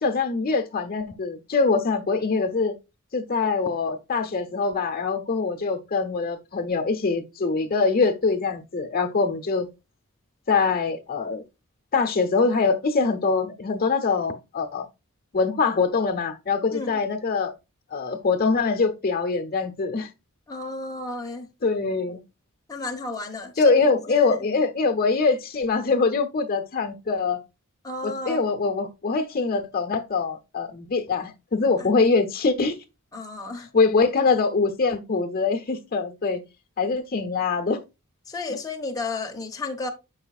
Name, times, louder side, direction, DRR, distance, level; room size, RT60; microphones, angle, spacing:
voice 1, 0.0-2.7 3.1-9.7 10.5-11.4 11.9-14.9 15.3-17.5 17.9-20.1 21.6-22.2 23.6-27.4 28.0-32.8 33.6-36.4 36.8-37.8, left 4 dB, 45° left, 0.9 m, -23 dB
voice 2, 20.5-21.5 22.7-24.4 27.8-28.4 31.8-31.9 33.1-33.7 38.3-39.9, left 3 dB, 15° left, 0.9 m, -33 dB
8.0 x 5.6 x 2.4 m
head